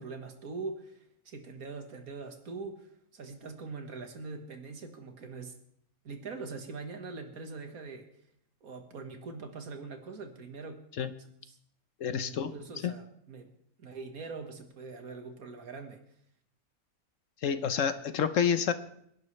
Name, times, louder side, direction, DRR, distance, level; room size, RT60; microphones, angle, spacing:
voice 1, 0.0-2.9 3.1-5.6 6.0-8.1 8.6-10.8 11.4-11.6 12.2-13.5 13.8-16.0, right 4 dB, 75° right, 5 dB, 2.0 m, -42 dB
voice 2, 12.0-12.5 12.8-12.9 17.4-18.7, left 7 dB, 65° left, 11 dB, 1.1 m, -28 dB
26.0 x 11.0 x 3.3 m, 0.71 s
omnidirectional pair, 1.5 m